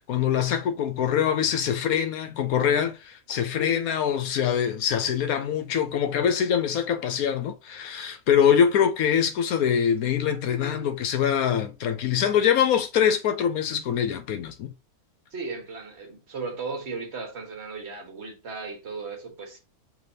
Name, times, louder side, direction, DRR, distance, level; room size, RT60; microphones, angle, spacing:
voice 1, 0.0-14.7, left 8 dB, 75° left, 1.2 m, -24 dB
voice 2, 15.3-19.6, right 4 dB, 50° right, 1.6 m, -36 dB
4.9 x 3.3 x 2.8 m
omnidirectional pair, 1.6 m